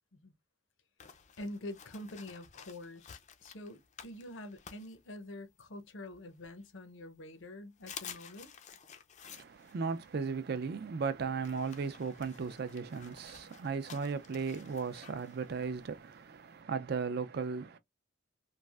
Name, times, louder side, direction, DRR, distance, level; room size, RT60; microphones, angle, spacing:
sound 1, 1.0-5.6 6.1-7.0 7.4-7.5 7.8-16.6, left 7 dB, 35° left, 0.4 m, -53 dB
voice 1, 1.4-8.5, left 1 dB, 70° left, 0.7 m, -46 dB
voice 2, 9.2-17.8, right 5 dB, 50° right, 0.4 m, -36 dB
3.2 x 2.4 x 2.3 m
head